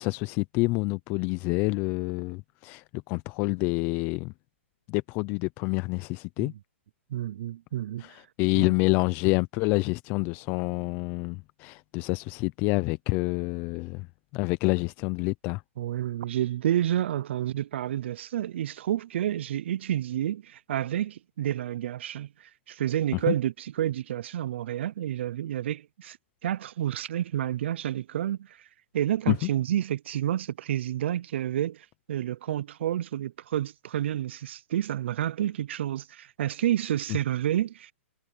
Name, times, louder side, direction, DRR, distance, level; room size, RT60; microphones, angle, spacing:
voice 1, 0.0-4.3 4.9-6.5 8.0-14.1 14.3-15.6 23.3-23.4 29.3-29.5, left 25 dB, 25° left, 0.5 m, -27 dB
voice 2, 7.1-8.1 8.5-8.7 15.8-26.2 26.4-28.7 28.9-37.9, right 11 dB, 60° right, 0.5 m, -29 dB
hypercardioid pair, 155°, 7 cm